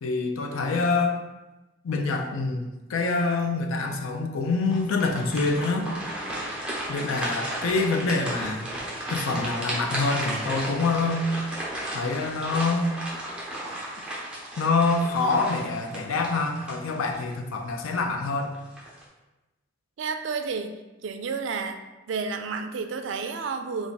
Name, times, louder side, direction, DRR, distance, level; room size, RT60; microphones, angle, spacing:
voice 1, 0.0-1.2 1.8-2.6 2.9-5.9 6.9-8.7 9.1-11.3 11.9-12.9 14.6-18.6, left 3 dB, 90° left, 4 dB, 0.5 m, -26 dB
sound 1, 4.7-17.3 17.8-17.9 18.5-19.0, right 1 dB, 5° right, 0.6 m, -34 dB
voice 2, 20.0-21.8 22.1-23.9, right 5 dB, 70° right, 7 dB, 0.3 m, -31 dB
3.4 x 2.5 x 3.9 m, 1.1 s
head